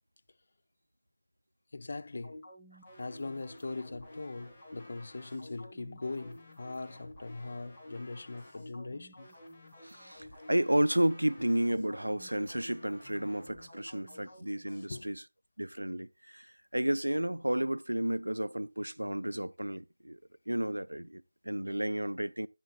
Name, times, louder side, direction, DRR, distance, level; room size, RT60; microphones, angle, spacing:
voice 1, 1.7-2.4 3.0-9.3 14.9-15.1, left 3 dB, 45° left, 0.5 m, -40 dB
sound 1, 2.2-14.9, left 1 dB, 15° left, 1.7 m, -52 dB
voice 2, 9.8-15.2 15.6-16.5 16.7-20.2 20.5-22.5, right 1 dB, 85° right, 0.4 m, -32 dB
11.0 x 10.0 x 2.3 m
figure-of-eight pair, 165°, 0 cm